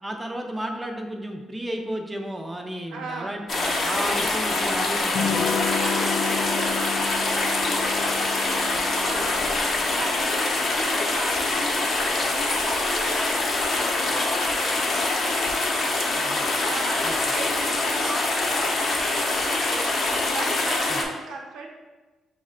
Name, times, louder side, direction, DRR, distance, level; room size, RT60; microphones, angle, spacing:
voice 1, 0.0-5.6 16.2-16.5 17.0-17.1 20.9-21.0, right 1 dB, 10° right, 2 dB, 0.4 m, -33 dB
voice 2, 2.9-3.4 5.8-9.5 9.9-15.6 16.6-21.7, right 3 dB, 80° right, 0 dB, 0.8 m, -37 dB
sound 1, 3.5-21.0, left 2 dB, 45° left, 0.7 m, -24 dB
Electric guitar / Strum, 5.2-10.5, left 6 dB, 80° left, 0.4 m, -31 dB
5.4 x 2.1 x 3.6 m, 1.2 s
cardioid pair, 120°, 0 cm